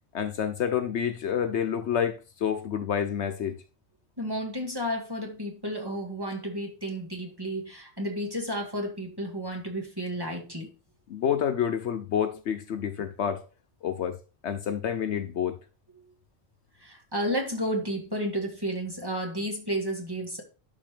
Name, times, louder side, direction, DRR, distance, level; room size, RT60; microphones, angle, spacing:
voice 1, 0.1-3.6 11.1-13.4 13.8-14.2 14.4-15.6, left 8 dB, 65° left, 0.9 m, -28 dB
voice 2, 4.2-10.7 16.8-20.4, equal, 20° right, 1.9 m, -32 dB
11.5 x 5.1 x 3.2 m
omnidirectional pair, 1.3 m